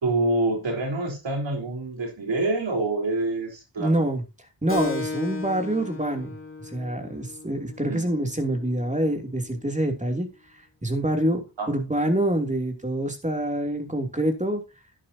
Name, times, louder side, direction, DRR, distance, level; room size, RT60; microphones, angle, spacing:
voice 1, 0.0-4.0 7.8-8.1 11.6-11.7, right 2 dB, 85° right, 4.1 m, -26 dB
voice 2, 3.8-4.2 4.6-6.3 6.7-10.3 10.8-11.4 11.7-14.6, right 1 dB, 15° right, 2.9 m, -26 dB
Keyboard (musical), 4.7-9.8, left 3 dB, 30° left, 2.3 m, -36 dB
12.0 x 10.0 x 2.8 m
wide cardioid pair, 60°, 44 cm